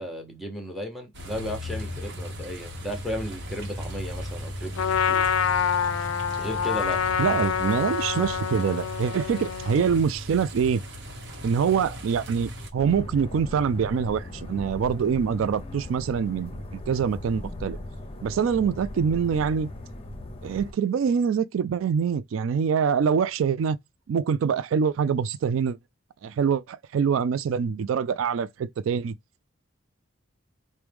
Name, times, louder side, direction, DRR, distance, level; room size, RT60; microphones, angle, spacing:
voice 1, 0.0-5.2 6.4-7.0, equal, ahead, 0.9 m, -34 dB
sound 1, 1.1-12.7, equal, 60° right, 1.0 m, -37 dB
Trumpet, 4.8-10.0, left 7 dB, 80° left, 0.4 m, -26 dB
voice 2, 7.2-10.8 11.4-17.8 18.2-19.7 20.4-23.8 24.1-25.8 26.2-29.2, right 6 dB, 75° right, 0.3 m, -25 dB
brooklyn ambient, 12.8-20.7, left 1 dB, 30° left, 0.7 m, -38 dB
4.6 x 2.2 x 3.4 m
head